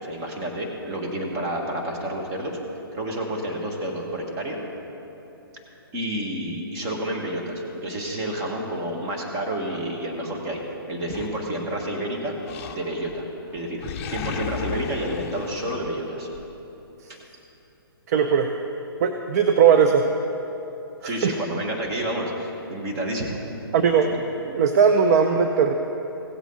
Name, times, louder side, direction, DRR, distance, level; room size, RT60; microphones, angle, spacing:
voice 1, 0.0-2.6 2.9-4.6 5.9-10.6 10.9-12.4 12.7-13.2 13.5-13.8 14.1-16.3 17.1-17.2 21.0-23.4, right 1 dB, 25° right, 0 dB, 1.7 m, -29 dB
Animal, 11.1-11.9 12.4-13.2 13.5-16.4, left 7 dB, 35° left, 0.7 m, -34 dB
voice 2, 18.1-18.5 19.0-20.0 21.0-21.3 23.7-24.1 24.5-25.7, right 7 dB, 40° right, 6 dB, 0.6 m, -19 dB
16.5 x 8.1 x 4.0 m, 3.0 s
hypercardioid pair, 140°, 13 cm